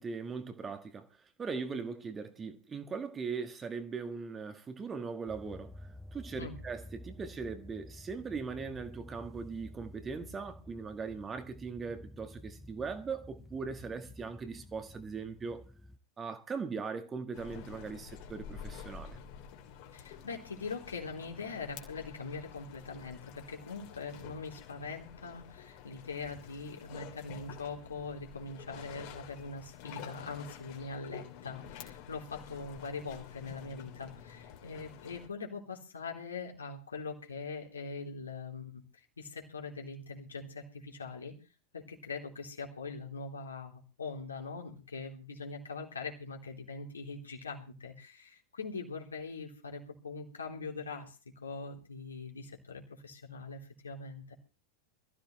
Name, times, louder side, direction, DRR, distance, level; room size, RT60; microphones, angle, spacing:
voice 1, 0.0-5.7 6.1-15.6 16.2-19.2, right 5 dB, 20° right, 1.7 m, -40 dB
sound 1, 5.3-16.0, left 1 dB, 5° left, 0.9 m, -51 dB
sound 2, 17.3-35.3, left 8 dB, 45° left, 2.8 m, -49 dB
voice 2, 19.9-38.8 39.2-41.4 41.7-54.3, left 4 dB, 70° left, 3.4 m, -42 dB
22.0 x 14.0 x 3.2 m
figure-of-eight pair, 90°, 0 cm